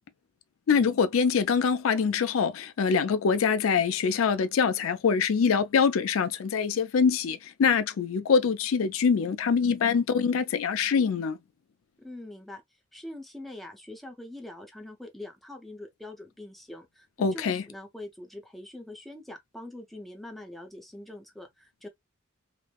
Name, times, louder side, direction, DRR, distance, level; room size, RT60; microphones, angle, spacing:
voice 1, 0.7-11.4 17.2-17.6, left 6 dB, 90° left, 0.4 m, -24 dB
voice 2, 12.0-12.6 12.9-21.9, left 1 dB, ahead, 0.6 m, -43 dB
3.1 x 2.1 x 2.3 m
head